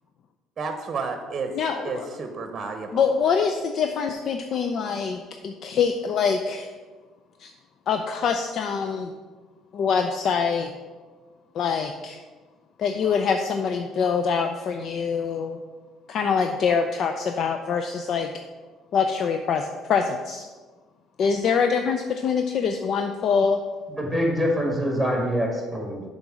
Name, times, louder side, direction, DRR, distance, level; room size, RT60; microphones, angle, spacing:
voice 1, 0.6-1.5 1.8-3.1, right 4 dB, 40° right, 6 dB, 0.8 m, -31 dB
voice 2, 1.6-1.9 2.9-6.7 7.4-7.5 7.9-9.1 9.7-10.7 11.5-12.2 12.8-15.6 16.1-18.3 18.9-20.4 21.2-23.6, left 6 dB, 55° left, 6 dB, 0.5 m, -24 dB
voice 3, 23.9-26.0, equal, 5° left, 0 dB, 2.2 m, -25 dB
6.9 x 3.9 x 6.2 m, 1.3 s
cardioid pair, 100°, 0 cm